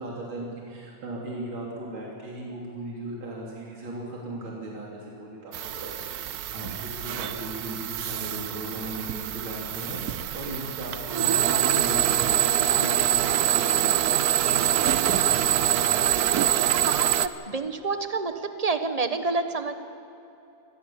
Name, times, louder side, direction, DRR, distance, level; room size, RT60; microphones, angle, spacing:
voice 1, 0.0-10.0 10.3-14.1 14.4-15.9, right 1 dB, 80° right, -3 dB, 4.1 m, -37 dB
sound 1, 5.5-17.3, right 12 dB, 65° right, 1.0 m, -25 dB
voice 2, 16.7-18.3 18.6-19.7, right 3 dB, 25° right, 8 dB, 1.0 m, -28 dB
25.0 x 18.5 x 7.2 m, 2.8 s
omnidirectional pair, 2.2 m